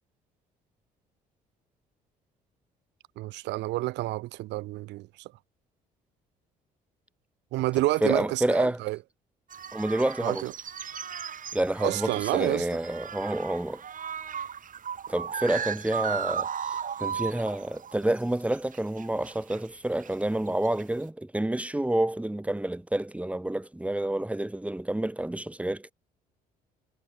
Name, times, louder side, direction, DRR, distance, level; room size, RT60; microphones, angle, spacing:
voice 1, 3.2-5.3 7.5-9.0 10.2-10.5 11.8-12.7, right 18 dB, 60° right, 0.5 m, -29 dB
voice 2, 8.0-8.8 9.7-10.4 11.5-13.8 15.1-25.9, right 1 dB, 5° right, 1.2 m, -28 dB
sound 1, 9.5-18.2 18.5-19.6 20.0-20.4 20.6-21.0, right 8 dB, 40° right, 1.5 m, -36 dB
hypercardioid pair, 50°, 20 cm